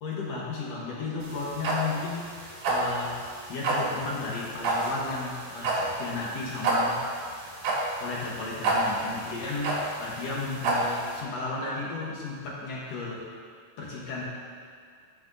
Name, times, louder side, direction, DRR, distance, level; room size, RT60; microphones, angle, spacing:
voice 1, 0.0-3.2 3.5-7.4 8.0-13.3 13.8-14.2, left 3 dB, 60° left, -4 dB, 1.9 m, -34 dB
sound 1, 1.2-11.2, right 2 dB, 75° right, 3.3 m, -29 dB
16.0 x 6.1 x 2.7 m, 2.1 s
omnidirectional pair, 4.1 m